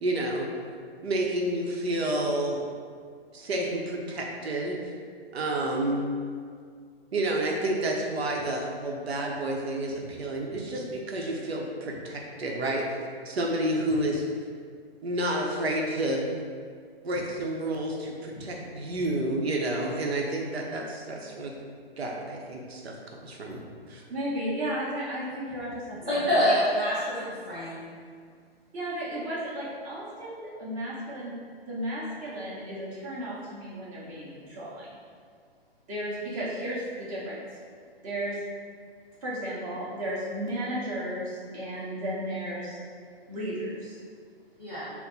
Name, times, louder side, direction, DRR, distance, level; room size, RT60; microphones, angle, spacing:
voice 1, 0.0-0.5 1.0-2.6 3.3-4.9 5.3-6.1 7.1-12.9 13.2-14.2 15.0-16.3 17.0-21.5 22.0-23.0 23.2-23.6 23.9-24.0, right 1 dB, 80° right, 0 dB, 0.7 m, -30 dB
voice 2, 24.1-26.1 28.7-31.3 31.7-34.9 35.9-37.4 38.0-38.4 39.2-42.8 43.3-44.0, right 1 dB, 35° right, -7 dB, 1.2 m, -34 dB
voice 3, 26.1-27.9 44.6-44.9, equal, ahead, -22 dB, 0.3 m, -26 dB
4.2 x 2.0 x 4.0 m, 2.1 s
hypercardioid pair, 155°, 31 cm